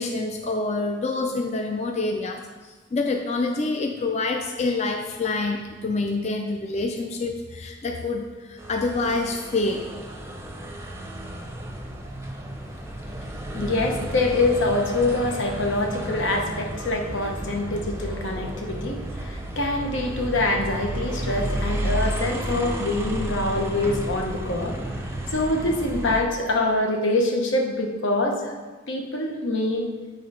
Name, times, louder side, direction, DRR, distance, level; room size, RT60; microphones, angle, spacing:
voice 1, 0.0-2.4 2.9-9.9, left 3 dB, 35° left, 3 dB, 0.4 m, -26 dB
sound 1, 8.6-26.2, right 1 dB, 15° right, 0.6 m, -32 dB
voice 2, 13.5-24.8 25.3-28.5 28.9-29.9, left 2 dB, 75° left, 2 dB, 1.0 m, -25 dB
8.4 x 3.8 x 5.5 m, 1.3 s
head